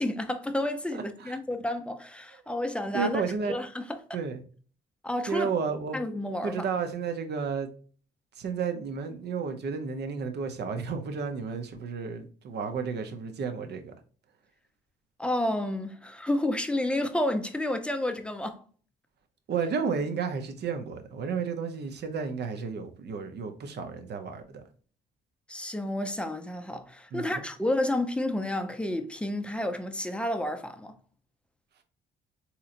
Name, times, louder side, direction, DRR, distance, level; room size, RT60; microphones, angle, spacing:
voice 1, 0.0-3.2 3.5-4.0 5.0-5.5 5.9-6.7 15.2-18.6 25.5-30.9, left 1 dB, 5° left, 0.5 m, -30 dB
voice 2, 2.9-3.5 4.1-4.4 5.3-6.0 6.4-7.7 8.4-13.9 19.5-24.6 27.1-27.3, right 5 dB, 55° right, 0.7 m, -32 dB
3.8 x 2.9 x 2.5 m
cardioid pair, 90°, 20 cm